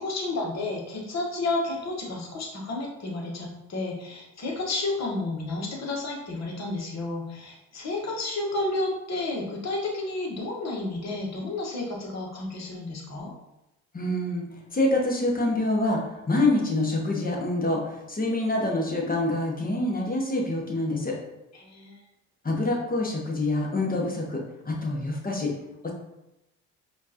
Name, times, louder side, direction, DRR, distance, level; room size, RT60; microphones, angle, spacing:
voice 1, 0.0-13.3 21.5-22.0, left 2 dB, 40° left, -1 dB, 1.3 m, -31 dB
voice 2, 13.9-14.5 14.7-16.0 16.3-21.2 22.4-25.5 25.8-25.9, left 2 dB, 20° left, -1 dB, 1.1 m, -26 dB
4.3 x 2.6 x 2.9 m, 0.91 s
hypercardioid pair, 60°, 40 cm